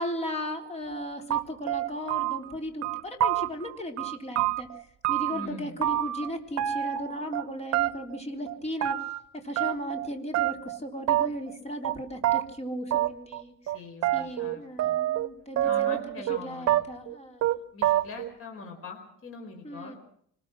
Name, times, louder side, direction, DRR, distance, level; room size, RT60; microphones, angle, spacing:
voice 1, 0.0-4.7 5.1-9.0 9.3-13.5 14.1-16.2 16.4-17.5 19.6-20.0, equal, 20° left, 4 dB, 3.7 m, -36 dB
sound 1, 0.9-1.0 1.3-2.5 2.8-3.7 4.0-5.5 5.8-6.3 6.6-7.4 7.7-8.2 8.5-9.2 9.6-10.1 10.3-10.8 11.1-11.5 11.8-11.9 12.2-12.4 12.9-13.4 13.7-15.3 15.6-16.4 16.7-17.1 17.4-17.6 17.8-18.3, right 13 dB, 60° right, 1.1 m, -27 dB
voice 2, 5.3-5.8 13.6-15.0 15.6-16.8 17.7-20.0, left 3 dB, 50° left, 3 dB, 4.7 m, -42 dB
25.5 x 20.5 x 6.2 m, 0.67 s
cardioid pair, 145°, 30 cm